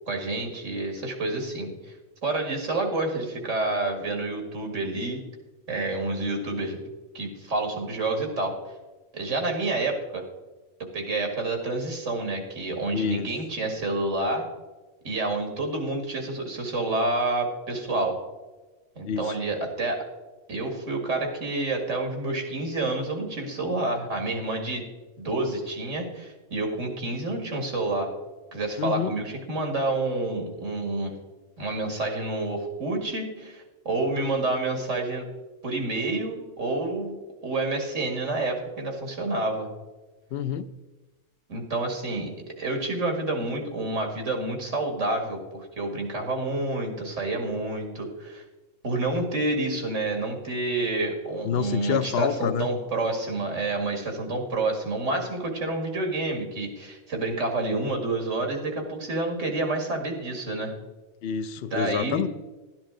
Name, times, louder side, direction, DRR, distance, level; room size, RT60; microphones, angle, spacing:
voice 1, 0.1-1.9 2.2-5.2 5.7-6.8 7.1-8.6 9.1-10.2 10.9-14.4 15.0-18.2 19.0-20.1 20.5-24.9 25.2-28.1 28.5-31.2 31.6-35.3 35.6-37.2 37.4-39.7 41.5-48.4 48.8-60.7 61.7-62.2, right 2 dB, 75° right, 3 dB, 2.3 m, -28 dB
voice 2, 12.9-13.3 19.1-19.3 28.8-29.1 40.3-40.7 51.4-52.7 61.2-62.3, left 8 dB, 60° left, 12 dB, 0.7 m, -27 dB
12.0 x 10.0 x 3.8 m, 1.2 s
omnidirectional pair, 1.3 m